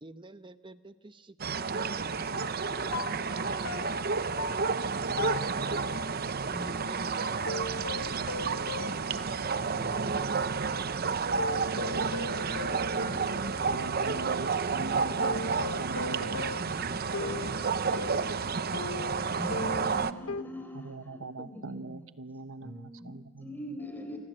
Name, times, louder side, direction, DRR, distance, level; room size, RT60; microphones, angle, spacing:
voice 1, 0.0-2.3 3.3-4.9 6.6-8.0 9.8-11.5 13.1-15.6 17.2-18.3 21.4-21.5, right 2 dB, 25° right, 11 dB, 0.9 m, -49 dB
sound 1, 1.4-20.1, right 5 dB, 50° right, 0.8 m, -31 dB
sound 2, 2.3-6.1 7.5-10.0 10.5-10.6 11.4-13.9 15.2-20.4, left 3 dB, 85° left, 0.9 m, -39 dB
voice 2, 6.5-7.6 8.9-9.2 9.7-10.3 11.7-12.6 12.9-13.6 16.2-17.7 18.2-18.6 19.3-22.1 22.6-24.2, left 1 dB, 10° left, 5 dB, 4.6 m, -44 dB
voice 3, 13.7-16.6 16.9-17.6 20.7-23.5, right 3 dB, 75° right, 12 dB, 1.1 m, -41 dB
29.0 x 25.5 x 7.8 m, 1.4 s
head